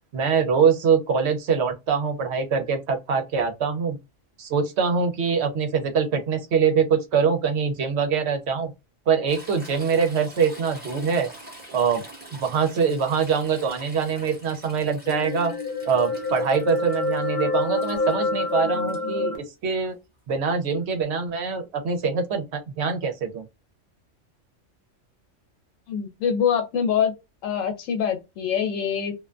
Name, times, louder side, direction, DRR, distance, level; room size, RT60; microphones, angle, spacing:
voice 1, 0.1-4.0 4.4-8.7 9.1-11.3 11.7-12.0 12.3-15.5 15.9-19.9 20.3-23.5, right 6 dB, 65° right, 0.9 m, -24 dB
Toilet flush / Trickle dribble, 9.3-19.0 20.8-20.9, right 1 dB, 10° right, 0.8 m, -45 dB
sound 1, 15.1-19.4, left 2 dB, 50° left, 0.7 m, -27 dB
voice 2, 25.9-27.1 27.4-29.1, left 7 dB, 85° left, 1.0 m, -24 dB
2.4 x 2.2 x 2.4 m
omnidirectional pair, 1.3 m